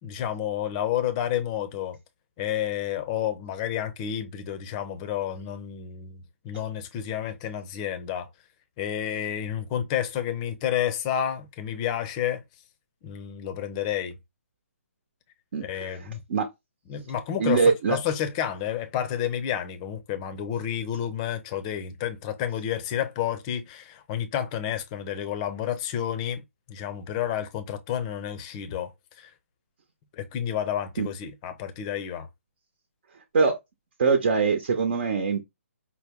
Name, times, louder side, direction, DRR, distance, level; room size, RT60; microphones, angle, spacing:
voice 1, 0.0-2.0 2.4-8.3 8.8-12.4 13.0-14.2 15.6-16.2 16.9-26.4 26.7-29.3 30.1-32.3, left 10 dB, 25° left, 0.7 m, -30 dB
voice 2, 15.5-16.5 17.4-18.0 31.0-31.1 33.3-33.5 34.0-35.4, right 5 dB, 45° right, 1.0 m, -23 dB
5.5 x 2.2 x 3.5 m
figure-of-eight pair, 140°, 8 cm